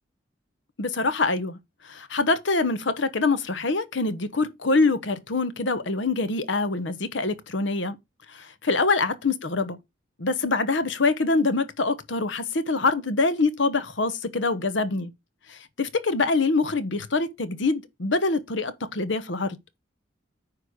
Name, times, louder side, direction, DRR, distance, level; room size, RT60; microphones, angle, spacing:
voice 1, 0.8-1.6 1.8-8.0 8.3-9.8 10.2-15.1 15.5-19.6, left 3 dB, 70° left, 1.0 m, -25 dB
9.7 x 3.2 x 6.3 m
head